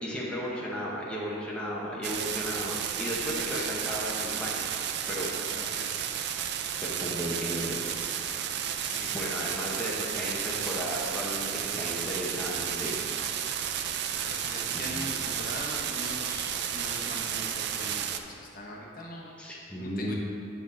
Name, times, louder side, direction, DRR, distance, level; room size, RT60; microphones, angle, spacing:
voice 1, 0.0-4.6 5.1-5.3 7.0-7.7 8.8-13.0 14.7-15.0 19.4-20.1, equal, 5° left, -6 dB, 0.9 m, -34 dB
sound 1, 2.0-18.2, right 9 dB, 55° right, 0.4 m, -32 dB
voice 2, 5.5-6.1 8.8-9.1 14.0-19.3 19.8-20.1, left 1 dB, 45° left, -2 dB, 1.0 m, -41 dB
7.8 x 6.8 x 3.9 m, 2.7 s
head